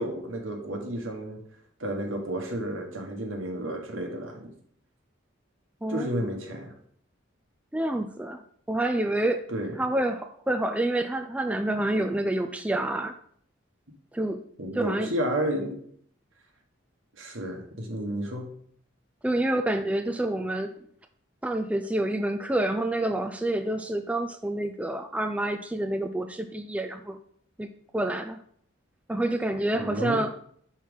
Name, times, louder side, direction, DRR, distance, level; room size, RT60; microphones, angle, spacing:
voice 1, 0.0-1.4 1.8-4.5 5.9-6.7 9.5-9.8 14.6-15.8 17.2-18.5 29.7-30.2, right 1 dB, 85° right, 3 dB, 1.5 m, -31 dB
voice 2, 5.8-6.3 7.7-8.4 8.7-9.5 9.8-13.1 14.1-14.4 14.7-15.1 19.2-20.7 21.4-27.2 27.6-27.7 27.9-28.4 29.1-30.3, right 1 dB, 5° right, 6 dB, 0.3 m, -28 dB
5.7 x 4.7 x 5.3 m, 0.63 s
head